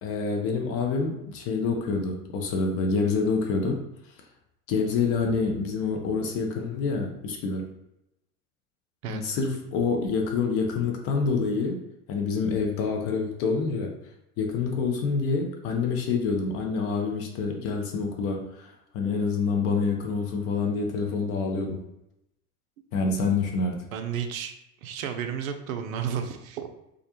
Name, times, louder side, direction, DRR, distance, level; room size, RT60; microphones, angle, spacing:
voice 1, 0.0-3.8 4.7-7.7 9.1-11.8 12.1-13.9 14.4-18.7 18.9-21.8 22.9-23.9, left 4 dB, 35° left, 2 dB, 0.4 m, -27 dB
voice 2, 23.9-24.5 24.8-26.7, right 8 dB, 65° right, 6 dB, 0.5 m, -32 dB
2.4 x 2.1 x 2.8 m, 0.86 s
hypercardioid pair, 90°, 45 cm